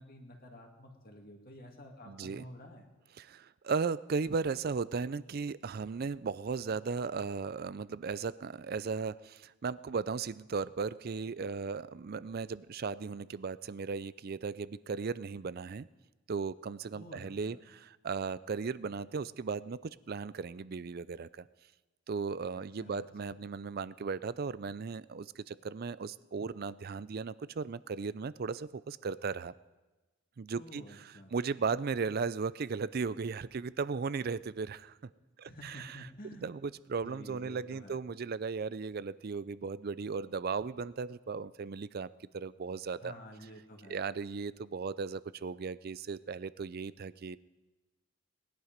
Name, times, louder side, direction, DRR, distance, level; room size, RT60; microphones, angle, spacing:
voice 1, 0.0-2.9 16.9-17.6 22.5-23.4 30.6-31.3 35.5-36.5 37.0-38.0 43.0-44.0, equal, 40° left, 2 dB, 2.0 m, -50 dB
voice 2, 2.1-2.4 3.2-15.9 16.3-21.5 22.1-29.5 30.4-35.0 35.4-36.0 36.4-42.1 42.3-43.1 43.9-47.4, right 5 dB, 45° right, 18 dB, 0.4 m, -36 dB
20.0 x 11.0 x 5.1 m, 1.1 s
head